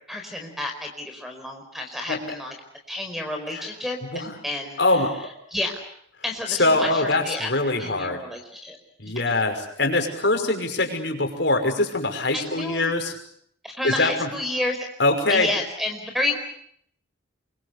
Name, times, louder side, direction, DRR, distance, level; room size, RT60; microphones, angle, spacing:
voice 1, 0.1-2.5 2.9-5.1 5.5-5.8 6.2-8.8 9.0-9.1 12.3-12.9 13.6-14.8 15.3-16.4, left 1 dB, ahead, 5 dB, 4.8 m, -30 dB
voice 2, 4.8-5.1 6.5-8.2 9.0-13.1 13.8-14.3 15.0-15.5, left 2 dB, 60° left, 4 dB, 5.9 m, -23 dB
28.0 x 23.5 x 8.3 m, 0.69 s
head